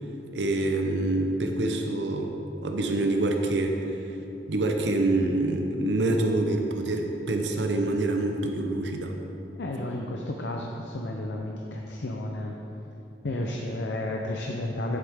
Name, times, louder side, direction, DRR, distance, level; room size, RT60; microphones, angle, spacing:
voice 1, 0.3-2.3 2.6-3.8 4.5-9.1, right 2 dB, 80° right, 3 dB, 0.8 m, -26 dB
voice 2, 9.6-12.5 13.2-15.0, left 1 dB, 85° left, 0 dB, 0.7 m, -32 dB
11.0 x 7.5 x 3.6 m, 3.0 s
head